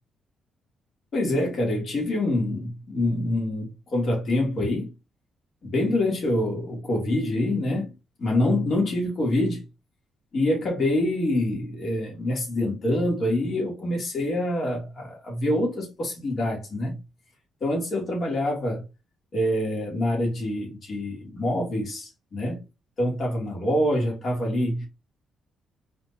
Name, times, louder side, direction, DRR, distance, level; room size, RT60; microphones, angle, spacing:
voice 1, 1.1-4.9 5.6-7.9 8.2-9.6 10.3-16.9 17.6-18.8 19.3-22.6 23.0-24.9, left 1 dB, 50° left, 2.7 m, -26 dB
4.3 x 4.2 x 2.8 m
cardioid pair, 90°, 0 cm